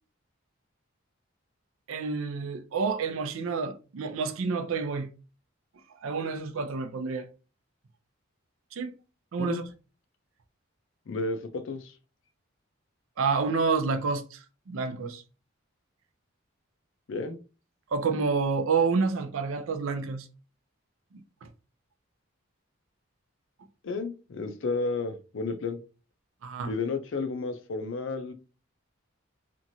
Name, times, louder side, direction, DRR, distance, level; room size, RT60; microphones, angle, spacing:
voice 1, 1.9-5.1 6.0-7.3 8.7-8.9 9.3-9.6 13.2-15.2 17.9-20.3 21.1-21.2 26.4-26.7, right 4 dB, 75° right, 0.5 m, -29 dB
voice 2, 11.1-11.9 17.1-17.4 23.8-25.8 26.7-28.3, left 3 dB, 60° left, 0.5 m, -32 dB
2.9 x 2.5 x 2.7 m
head